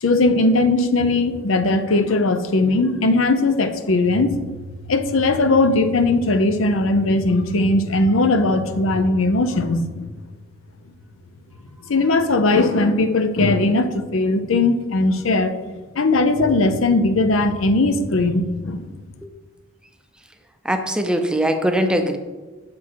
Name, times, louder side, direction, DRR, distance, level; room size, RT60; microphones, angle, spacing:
voice 1, 0.0-4.6 4.8-10.1 11.9-15.5 16.0-18.8, left 2 dB, 80° left, 9 dB, 0.6 m, -19 dB
voice 2, 20.6-22.2, right 1 dB, 5° right, 5 dB, 0.5 m, -21 dB
7.5 x 6.1 x 4.6 m, 1.3 s
head